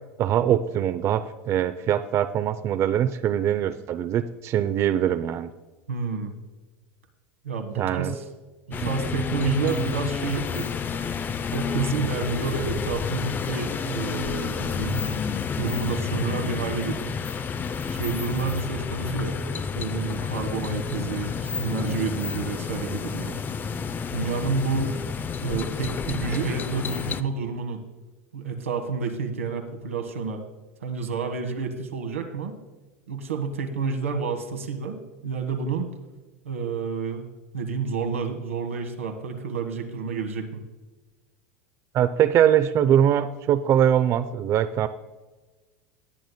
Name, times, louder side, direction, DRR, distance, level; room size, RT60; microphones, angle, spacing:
voice 1, 0.2-5.5 7.8-8.1 41.9-44.9, right 10 dB, 40° right, 11 dB, 0.5 m, -22 dB
voice 2, 5.9-6.3 7.4-8.2 8.7-10.7 11.5-15.0 15.6-17.1 17.9-23.4 24.1-24.9 25.4-27.8 28.3-30.4 30.8-32.5 33.1-35.9 36.4-37.2 37.5-40.6, right 4 dB, 90° right, 4 dB, 1.4 m, -29 dB
sound 1, 8.7-27.2, left 6 dB, 25° left, 0.5 m, -30 dB
19.0 x 9.1 x 2.2 m, 1.2 s
hypercardioid pair, 85°, 7 cm